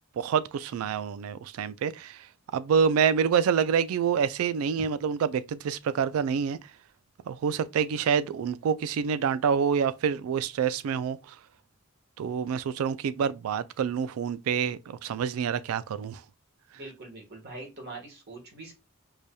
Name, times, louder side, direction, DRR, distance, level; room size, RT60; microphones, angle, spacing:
voice 1, 0.2-2.2 2.5-6.6 7.3-11.2 12.2-16.2, right 7 dB, 75° right, 0.3 m, -27 dB
voice 2, 16.7-18.7, right 2 dB, 50° right, 1.4 m, -43 dB
4.8 x 2.7 x 2.2 m
head